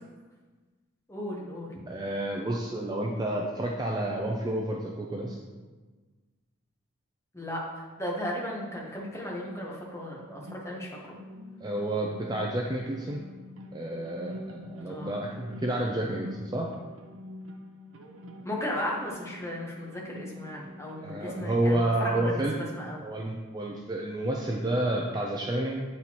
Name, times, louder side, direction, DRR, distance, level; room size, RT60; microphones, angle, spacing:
voice 1, 1.1-1.7 7.3-11.2 14.8-15.1 18.4-23.1, left 1 dB, 15° left, -3 dB, 0.9 m, -36 dB
voice 2, 1.9-5.4 11.6-13.2 13.7-16.7 21.0-22.6 23.0-25.8, right 1 dB, 20° right, -1 dB, 0.4 m, -30 dB
sound 1, 10.2-21.6, left 1 dB, 75° right, 0.6 m, -46 dB
7.8 x 4.2 x 2.9 m, 1.3 s
head